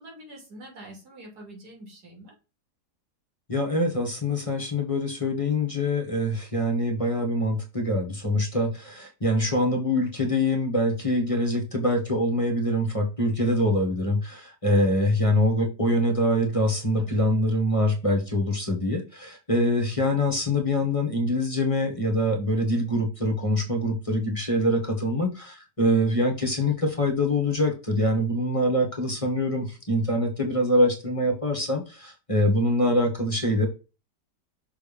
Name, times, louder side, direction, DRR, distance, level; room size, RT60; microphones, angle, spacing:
voice 1, 0.0-2.3 17.0-17.3, right 1 dB, 70° right, 0 dB, 3.3 m, -45 dB
voice 2, 3.5-33.7, left 1 dB, 20° left, 3 dB, 1.5 m, -24 dB
6.5 x 3.5 x 5.2 m, 0.31 s
omnidirectional pair, 1.8 m